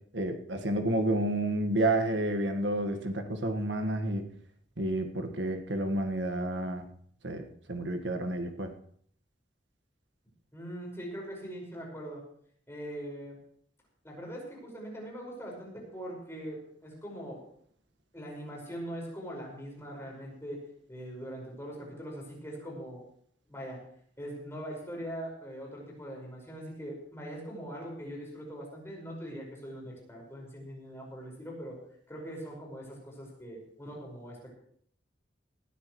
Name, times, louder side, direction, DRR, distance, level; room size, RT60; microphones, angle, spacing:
voice 1, 0.1-4.3 4.8-6.9 7.2-8.7, right 1 dB, 85° right, 6 dB, 1.7 m, -30 dB
voice 2, 10.5-12.2 12.7-13.4 14.0-17.4 18.1-20.6 20.9-23.0 23.5-23.8 24.2-31.8 32.1-34.6, equal, 15° left, -2 dB, 5.5 m, -42 dB
19.5 x 13.5 x 3.2 m, 0.62 s
head